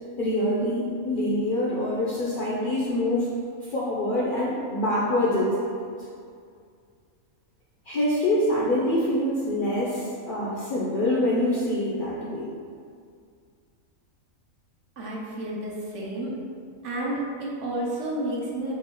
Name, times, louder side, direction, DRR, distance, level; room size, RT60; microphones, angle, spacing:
voice 1, 0.2-3.3 3.6-5.9 7.9-12.5, left 1 dB, 60° left, -7 dB, 0.5 m, -25 dB
voice 2, 15.0-16.3 16.8-18.7, right 1 dB, 65° right, -4 dB, 1.0 m, -31 dB
4.7 x 2.6 x 2.9 m, 2.2 s
omnidirectional pair, 1.4 m